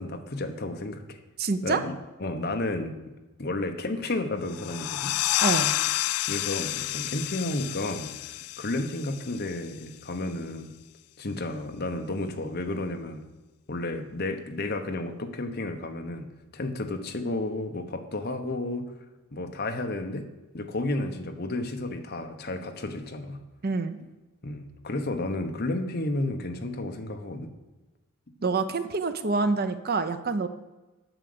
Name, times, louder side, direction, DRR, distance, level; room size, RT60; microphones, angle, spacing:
voice 1, 0.0-1.2 1.6-2.9 3.4-5.2 6.3-8.1 8.6-10.7 11.2-13.2 13.7-18.9 19.3-20.3 20.5-23.4 24.4-27.5, left 2 dB, 45° left, 6 dB, 1.0 m, -32 dB
voice 2, 1.4-1.8 5.4-5.7 23.6-24.0 28.4-30.5, right 4 dB, 45° right, 10 dB, 0.6 m, -26 dB
sound 1, 4.5-9.8, left 16 dB, 80° left, 0.3 m, -30 dB
9.0 x 6.4 x 7.8 m, 1.1 s
head